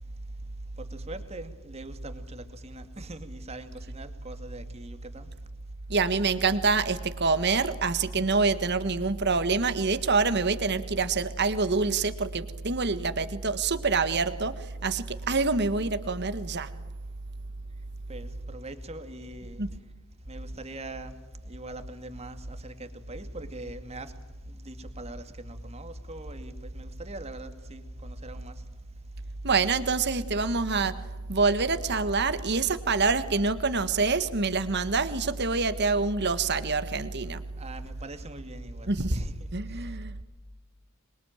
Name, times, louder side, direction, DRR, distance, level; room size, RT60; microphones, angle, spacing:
voice 1, 0.8-5.3 18.1-19.6 20.3-21.1 21.5-24.1 24.5-28.6 37.6-39.3 39.7-39.8, right 1 dB, 30° right, 2.3 m, -42 dB
voice 2, 5.9-16.7 19.6-19.7 29.4-30.9 31.3-37.4 38.9-39.2 39.5-40.2, right 4 dB, 50° right, 1.5 m, -26 dB
26.5 x 22.0 x 9.1 m
head